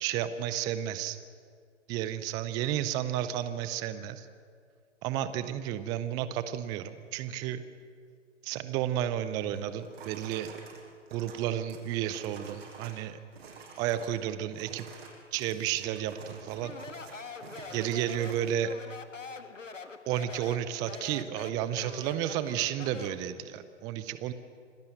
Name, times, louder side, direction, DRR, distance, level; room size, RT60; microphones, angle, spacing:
voice 1, 0.0-1.2 1.9-4.3 5.0-7.6 8.4-10.5 11.1-13.2 13.8-14.9 15.3-16.7 17.7-18.7 20.1-24.3, right 11 dB, 10° right, 13 dB, 0.5 m, -32 dB
sound 1, 9.5-13.0 13.3-14.2 14.5-18.6, right 5 dB, 55° right, 6.2 m, -49 dB
Speech, 16.5-23.3, left 4 dB, 90° left, 1.8 m, -44 dB
26.5 x 18.0 x 7.9 m, 2.1 s
figure-of-eight pair, 125°, 36 cm